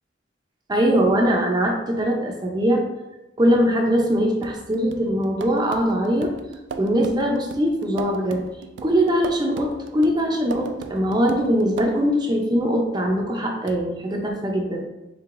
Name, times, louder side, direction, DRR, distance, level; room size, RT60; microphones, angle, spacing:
voice 1, 0.7-2.9 3.4-6.3 6.8-8.5 8.8-14.9, equal, 25° right, 1 dB, 0.6 m, -21 dB
sound 1, 4.4-12.2 13.7-13.8, right 5 dB, 80° right, 0.3 m, -38 dB
4.7 x 3.8 x 2.6 m, 0.99 s
head